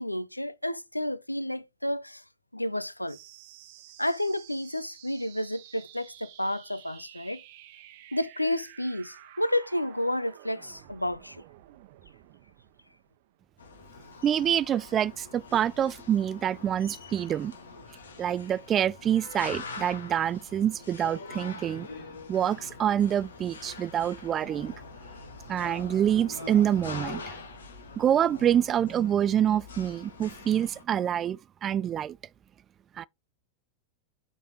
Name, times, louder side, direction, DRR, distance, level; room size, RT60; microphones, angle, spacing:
voice 1, 0.0-2.2 2.5-3.2 4.0-7.4 8.1-11.4, left 1 dB, 85° left, 0.5 m, -31 dB
sound 1, 3.1-14.1, right 13 dB, 50° right, 0.9 m, -52 dB
sound 2, 13.6-30.8, left 4 dB, 70° left, 1.8 m, -44 dB
voice 2, 14.2-17.5 18.2-21.9 22.3-24.7 25.5-27.2 28.0-32.2 33.0-33.1, right 10 dB, 25° right, 0.3 m, -26 dB
8.3 x 4.1 x 4.3 m
figure-of-eight pair, 90°, 0 cm